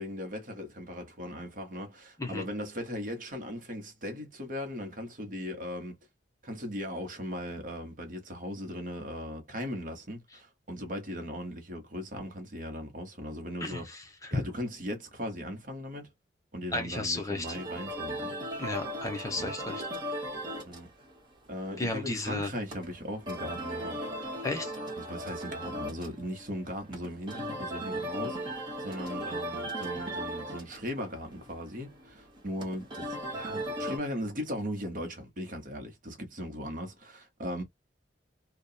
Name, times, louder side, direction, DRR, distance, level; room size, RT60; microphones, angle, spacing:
voice 1, 0.0-6.0 6.4-13.9 14.3-16.1 16.5-18.3 19.4-19.5 20.6-20.9 21.5-24.1 25.0-37.6, equal, 45° right, 1.0 m, -38 dB
voice 2, 13.6-14.4 16.7-17.4 18.6-19.8 21.8-22.5 24.4-24.7, left 2 dB, 20° left, 0.6 m, -33 dB
sound 1, 17.4-34.0, right 1 dB, 25° right, 1.0 m, -38 dB
2.8 x 2.3 x 2.2 m
head